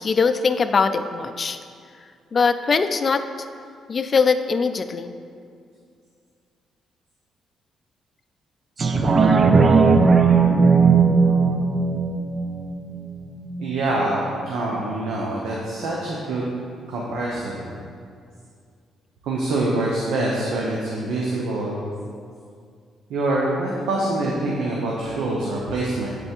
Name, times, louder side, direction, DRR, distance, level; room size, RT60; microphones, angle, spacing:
voice 1, 0.0-1.6 2.3-3.5 3.9-5.1, left 5 dB, 40° left, 10 dB, 0.3 m, -21 dB
sound 1, 8.8-13.8 14.3-14.4, right 5 dB, 40° right, 0.4 m, -17 dB
voice 2, 13.6-16.5 16.9-17.7 19.2-21.9 23.1-26.2, right 2 dB, 85° right, -3 dB, 0.7 m, -25 dB
7.7 x 3.2 x 4.4 m, 2.3 s
cardioid pair, 90°, 0 cm